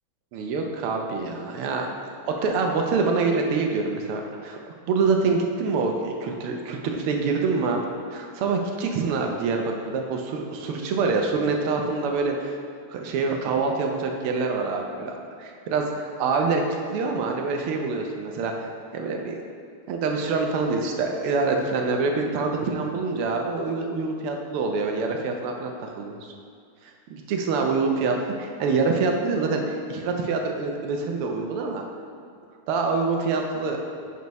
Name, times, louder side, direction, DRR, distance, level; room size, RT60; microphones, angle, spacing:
voice 1, 0.3-4.6 4.9-7.8 8.1-12.6 12.9-15.8 16.2-16.6 16.9-18.5 18.9-19.4 19.9-26.2 27.1-31.8 32.7-33.8, right 4 dB, 90° right, 2 dB, 1.6 m, -26 dB
6.5 x 4.1 x 5.2 m, 2.4 s
omnidirectional pair, 2.4 m